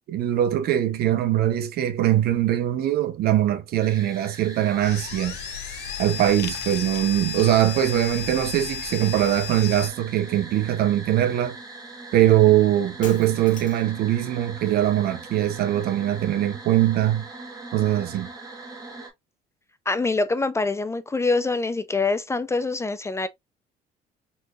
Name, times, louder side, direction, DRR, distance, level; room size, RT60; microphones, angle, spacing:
voice 1, 0.1-5.4 6.0-11.6 12.1-17.2 17.7-18.3, right 12 dB, 70° right, 0.8 m, -22 dB
sound 1, 3.8-19.1, right 3 dB, 20° right, 1.3 m, -41 dB
sound 2, 4.8-9.9, left 8 dB, 75° left, 0.7 m, -34 dB
Shatter, 13.0-14.0, left 6 dB, 50° left, 1.4 m, -41 dB
voice 2, 19.9-23.3, left 3 dB, 15° left, 0.4 m, -25 dB
4.4 x 2.9 x 2.3 m
cardioid pair, 110°, 17 cm